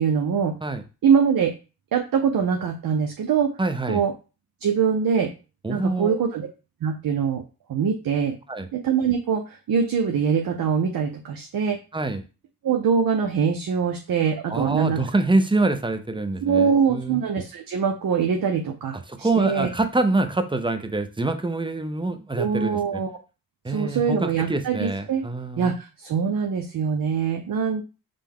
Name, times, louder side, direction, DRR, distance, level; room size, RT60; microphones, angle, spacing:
voice 1, 0.0-0.6 1.0-1.5 1.9-3.5 3.9-4.1 4.6-5.3 5.7-6.5 6.8-7.4 7.7-8.3 8.7-11.8 12.6-15.0 16.4-19.7 22.4-23.1 23.7-25.2 25.6-27.8, right 6 dB, 60° right, 3 dB, 0.7 m, -23 dB
voice 2, 3.6-4.0 5.6-6.2 8.5-8.7 11.9-12.2 14.5-17.2 19.1-23.0 23.6-25.7, right 2 dB, 15° right, 8 dB, 0.5 m, -25 dB
5.1 x 2.2 x 3.6 m, 0.32 s
cardioid pair, 70°, 39 cm